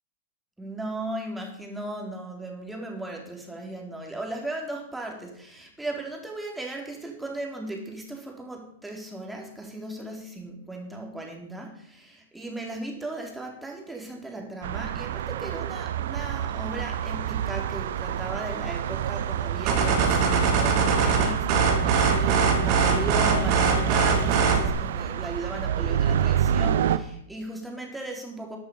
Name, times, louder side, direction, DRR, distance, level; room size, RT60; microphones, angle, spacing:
voice 1, 0.6-28.6, right 2 dB, 5° right, 0 dB, 3.7 m, -37 dB
sound 1, 14.6-27.0, right 9 dB, 65° right, 0.7 m, -28 dB
sound 2, 19.7-24.7, right 5 dB, 45° right, 3.3 m, -22 dB
14.5 x 8.7 x 5.5 m, 0.68 s
hypercardioid pair, 105°, 0 cm